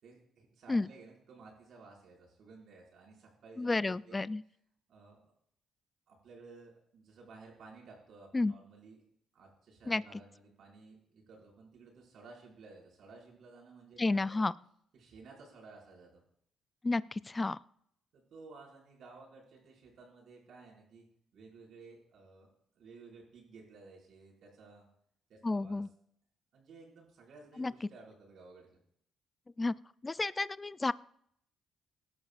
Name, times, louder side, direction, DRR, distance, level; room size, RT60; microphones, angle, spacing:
voice 1, 0.0-4.2 4.9-5.3 6.1-9.0 9.3-14.4 14.9-16.2 18.1-21.0 21.3-24.9 25.3-25.9 26.5-28.8, right 4 dB, 70° right, -2 dB, 5.5 m, -55 dB
voice 2, 3.6-4.4 8.3-8.5 9.9-10.0 14.0-14.5 16.8-17.6 25.4-25.9 27.6-27.7 29.6-29.8 30.0-30.9, left 3 dB, 20° left, 18 dB, 0.4 m, -31 dB
18.5 x 11.5 x 2.5 m, 0.69 s
cardioid pair, 90°, 0 cm